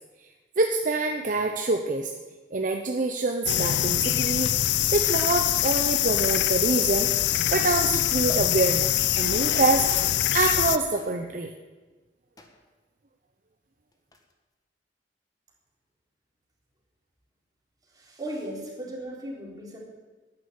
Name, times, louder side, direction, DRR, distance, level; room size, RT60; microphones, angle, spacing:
voice 1, 0.6-2.1 2.5-4.5 4.9-7.1 7.5-11.5, right 3 dB, 45° right, 4 dB, 0.8 m, -26 dB
sound 1, 3.5-10.8, left 13 dB, 75° left, 0.5 m, -24 dB
sound 2, 6.9-7.5 8.3-8.9 9.5-10.1 11.0-11.3 12.4-12.7 13.9-14.3, left 1 dB, 20° left, 1.3 m, -45 dB
voice 2, 17.9-19.8, right 1 dB, 20° right, -3 dB, 3.6 m, -36 dB
11.0 x 9.7 x 8.1 m, 1.3 s
head